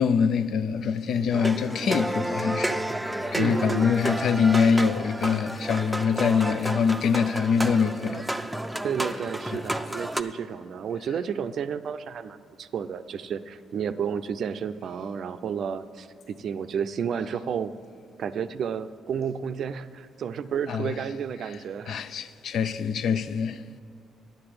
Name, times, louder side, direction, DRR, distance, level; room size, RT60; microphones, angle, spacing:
voice 1, 0.0-2.8 3.3-8.3 9.5-9.6 20.7-20.9 21.9-23.8, left 6 dB, 65° left, 0.5 m, -24 dB
sound 1, 1.3-10.2, right 1 dB, 5° right, 0.5 m, -31 dB
voice 2, 3.3-3.9 8.8-17.7 18.2-22.0, right 7 dB, 65° right, 0.5 m, -31 dB
10.0 x 6.9 x 7.7 m
cardioid pair, 90°, 0 cm